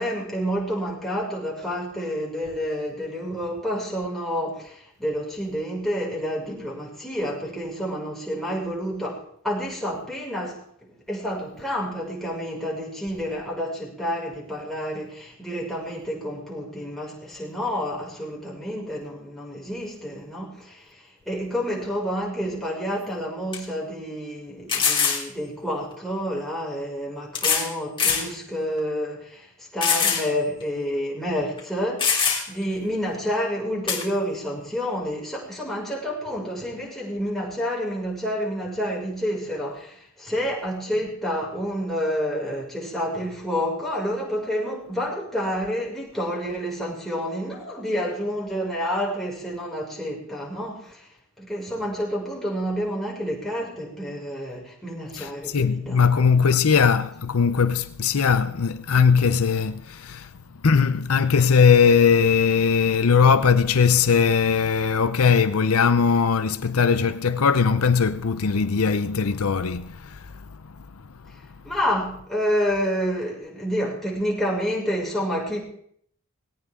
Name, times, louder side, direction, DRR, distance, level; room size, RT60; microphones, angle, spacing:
voice 1, 0.0-10.6 11.1-51.1 51.4-56.3 71.6-75.6, equal, ahead, 6.1 m, -29 dB
sound 1, 22.9-23.0 23.5-23.6 24.7-25.2 26.4-26.5 27.3-27.7 28.0-28.3 28.8-28.9 29.8-30.3 30.6-30.7 31.6-31.7 32.0-32.6 33.9-34.0, left 6 dB, 25° left, 3.3 m, -22 dB
voice 2, 55.1-60.3 60.6-70.5, left 6 dB, 80° left, 0.7 m, -20 dB
20.0 x 18.0 x 3.8 m
head